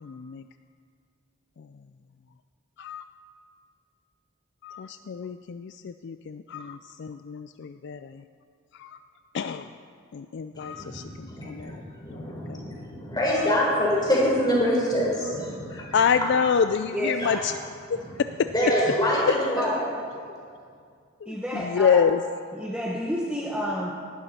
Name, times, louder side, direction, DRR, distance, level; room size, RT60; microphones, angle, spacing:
voice 1, 0.0-0.4 2.8-3.0 4.6-8.0 8.8-8.9 9.3-9.6 10.1-11.7 12.5-12.6 15.9-17.5 21.2-22.2, left 7 dB, 55° left, 10 dB, 0.3 m, -27 dB
voice 2, 10.5-16.7 17.2-17.3 17.9-19.8, left 1 dB, 20° left, -4 dB, 3.9 m, -26 dB
voice 3, 16.9-17.5 18.6-18.7 19.6-19.8 21.3-22.1 22.5-23.9, equal, 5° right, -2 dB, 0.9 m, -30 dB
19.0 x 12.0 x 4.3 m, 2.3 s
head